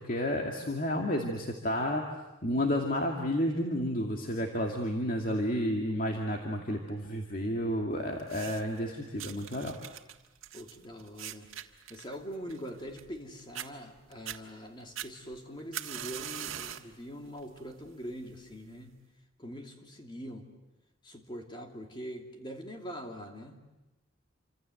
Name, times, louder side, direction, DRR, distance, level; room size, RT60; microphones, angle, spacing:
voice 1, 0.0-2.1 2.4-9.8, equal, 40° left, 2 dB, 2.3 m, -31 dB
sound 1, 8.2-8.8 9.2-13.2 13.5-13.7 14.1-14.4 15.0-16.9 17.4-17.7 18.5-18.6, right 10 dB, 80° right, 1.7 m, -42 dB
voice 2, 10.5-11.5 11.9-19.0 19.4-20.5 21.0-23.6, equal, 25° left, 3 dB, 2.8 m, -43 dB
28.5 x 25.5 x 7.9 m, 1.0 s
head